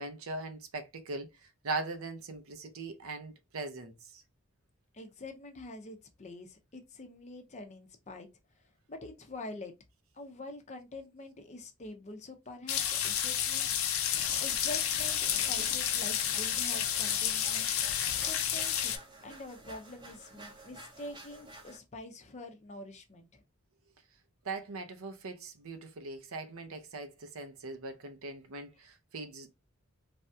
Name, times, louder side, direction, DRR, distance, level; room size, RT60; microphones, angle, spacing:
voice 1, 0.0-4.2 24.4-29.5, right 3 dB, 75° right, 0.6 m, -40 dB
voice 2, 4.9-8.3 8.9-9.7 10.1-13.7 14.4-17.7 18.2-19.0 19.2-23.4, left 2 dB, 35° left, 0.6 m, -45 dB
sound 1, 12.7-19.0, left 9 dB, 75° left, 0.5 m, -30 dB
sound 2, 14.1-21.8, right 1 dB, 20° right, 0.7 m, -51 dB
3.4 x 2.2 x 2.6 m
head